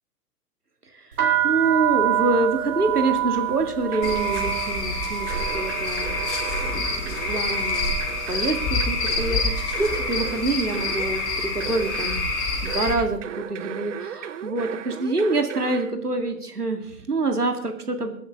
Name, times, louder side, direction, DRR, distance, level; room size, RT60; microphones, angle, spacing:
sound 1, 1.1-9.1 9.3-10.0 10.6-10.9 11.2-12.6, right 11 dB, 70° right, 2.5 m, -28 dB
voice 1, 1.4-6.1 6.6-7.9 8.3-18.1, right 3 dB, 85° right, 5 dB, 2.2 m, -26 dB
sound 2, 2.9-3.6 3.9-4.6 5.3-12.3 12.6-15.9, right 9 dB, 55° right, 1.0 m, -37 dB
Cricket / Frog, 4.0-12.9, left 3 dB, 50° left, 3.8 m, -27 dB
24.0 x 10.0 x 3.6 m, 0.75 s
figure-of-eight pair, 105°, 45 cm